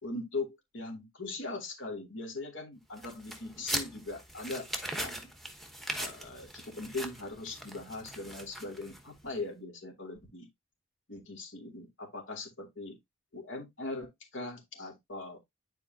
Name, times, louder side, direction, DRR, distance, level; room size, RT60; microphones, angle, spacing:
voice 1, 0.0-4.7 4.9-5.3 6.0-10.5 11.1-13.0 13.3-15.4, left 2 dB, 70° left, 2.6 m, -40 dB
sound 1, 3.0-9.2, right 1 dB, ahead, 1.0 m, -40 dB
9.9 x 4.5 x 2.7 m
head